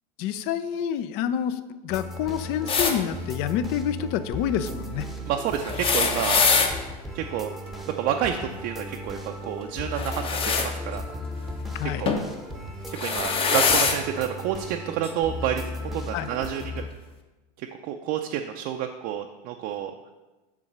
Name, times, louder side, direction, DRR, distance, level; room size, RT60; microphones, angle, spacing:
voice 1, 0.2-5.1 11.7-12.1 16.1-16.3, left 9 dB, 50° left, 13 dB, 0.5 m, -28 dB
sound 1, 1.9-16.9, left 1 dB, ahead, 0.8 m, -36 dB
sound 2, 2.7-3.0 5.6-6.7 9.9-10.7 12.1-12.3 12.9-14.0 15.0-15.1 16.3-16.4, left 5 dB, 25° left, 0.9 m, -23 dB
voice 2, 5.2-6.4 7.1-7.5 8.0-11.0 11.8-12.1 12.9-16.8 17.6-19.9, right 10 dB, 50° right, 3 dB, 0.5 m, -29 dB
7.2 x 3.7 x 6.5 m, 1.1 s
supercardioid pair, 120°, 21 cm